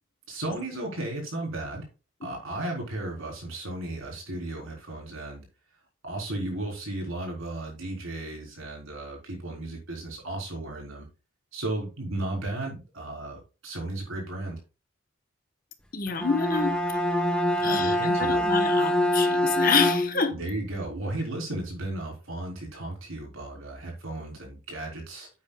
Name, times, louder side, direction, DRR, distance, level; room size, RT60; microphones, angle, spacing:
voice 1, 0.3-1.9 2.2-5.4 6.0-11.1 11.5-14.6 17.6-18.4 20.3-25.3, right 2 dB, 85° right, 4.1 m, -34 dB
voice 2, 15.9-16.8 17.6-20.4, left 5 dB, 45° left, 1.2 m, -27 dB
Bowed string instrument, 16.1-20.4, left 1 dB, 5° left, 1.0 m, -25 dB
9.9 x 8.3 x 2.4 m
head